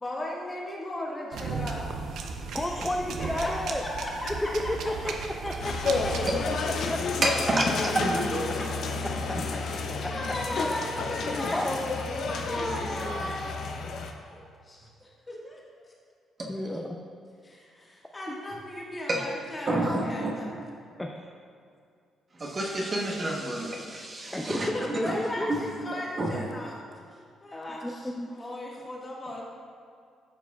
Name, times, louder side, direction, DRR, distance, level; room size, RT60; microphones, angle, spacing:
voice 1, 0.0-1.9 3.2-3.7 4.0-4.3 8.3-8.7 9.5-9.7 10.0-11.6 12.3-15.6 17.4-20.5 24.7-26.8 27.1-29.4, left 1 dB, 25° left, -4 dB, 1.6 m, -37 dB
sound 1, 1.3-6.4, right 4 dB, 75° right, 0.6 m, -35 dB
voice 2, 2.5-3.8 4.7-6.1 6.9-7.0 7.5-7.6 7.8-8.2 9.3-9.4 10.5-10.7 11.2-13.3 16.5-17.0 18.3-18.4 21.0-21.1 24.3-24.6 25.0-25.7 27.8-28.3, left 1 dB, 10° left, 1 dB, 0.5 m, -33 dB
sound 2, 5.6-14.1, left 4 dB, 70° left, 0.6 m, -31 dB
voice 3, 7.2-8.4 16.4-16.5 19.1-19.2 19.7-20.6 22.4-24.7 25.0-25.2 25.5-25.6 26.2-26.4, right 1 dB, 35° right, 0 dB, 1.0 m, -28 dB
12.5 x 4.8 x 2.3 m, 2.3 s
cardioid pair, 90°, 0 cm